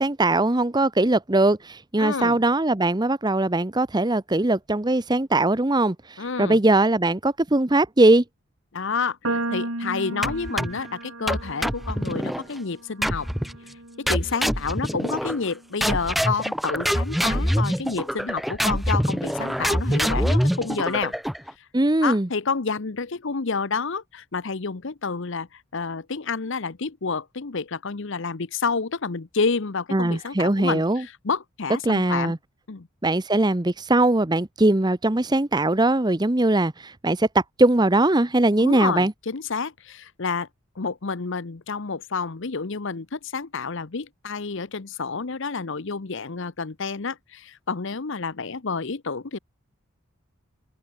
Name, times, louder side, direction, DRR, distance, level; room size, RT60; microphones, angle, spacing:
voice 1, 0.0-8.2 21.7-22.3 29.9-31.0 31.9-32.4 33.0-39.1, right 2 dB, 20° right, 0.8 m, -21 dB
voice 2, 2.0-2.4 6.2-6.6 8.7-13.3 14.0-21.1 22.0-32.4 32.7-32.9 38.6-40.5 40.8-49.4, left 4 dB, 60° left, 0.8 m, -29 dB
sound 1, 9.2-15.6, right 2 dB, 70° right, 4.1 m, -35 dB
sound 2, 10.2-10.9 11.3-12.4 13.0-13.6 14.1-15.5 15.8-21.5, equal, ahead, 0.3 m, -25 dB
open air
head